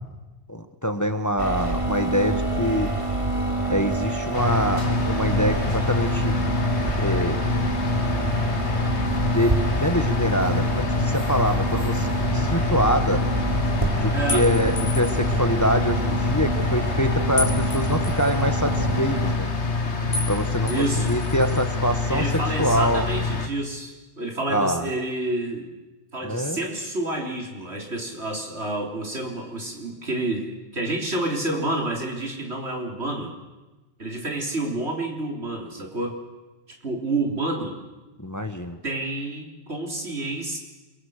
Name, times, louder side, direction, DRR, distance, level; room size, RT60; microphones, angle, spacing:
voice 1, 0.5-2.9 3.7-6.3 7.0-7.4 9.3-13.2 14.0-19.5 20.3-22.3 22.6-23.1 24.5-24.9 26.2-26.7 38.2-38.8, equal, 15° left, 8 dB, 1.4 m, -25 dB
sound 1, 1.4-19.3, right 2 dB, 30° right, 2.8 m, -27 dB
sound 2, 4.3-23.5, left 4 dB, 80° left, 1.9 m, -26 dB
voice 2, 14.1-14.5 20.7-21.1 22.1-25.7 26.1-30.5 30.7-33.3 34.0-36.2 36.8-37.8 38.8-40.6, right 2 dB, 70° right, 1 dB, 4.2 m, -29 dB
sound 3, 14.3-15.3 17.4-18.4 20.1-20.4 20.7-21.6, left 3 dB, 60° left, 4.1 m, -32 dB
28.0 x 23.0 x 6.6 m, 1.1 s
omnidirectional pair, 1.1 m